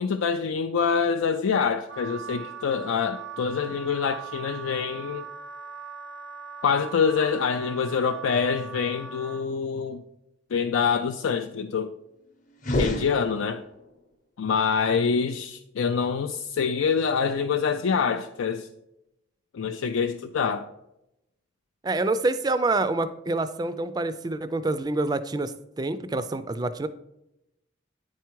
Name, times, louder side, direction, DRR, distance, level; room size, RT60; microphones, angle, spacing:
voice 1, 0.0-5.2 6.6-10.0 10.5-11.9 12.7-13.6 14.4-18.7 19.5-20.7, left 6 dB, 85° left, 7 dB, 0.4 m, -25 dB
Wind instrument woodwind instrument, 1.9-9.4, right 5 dB, 90° right, 0.7 m, -40 dB
sound 1, 12.6-13.9, left 1 dB, 40° left, 0.8 m, -29 dB
voice 2, 21.8-26.9, right 2 dB, 20° right, 12 dB, 0.3 m, -27 dB
9.4 x 4.6 x 4.6 m, 0.88 s
head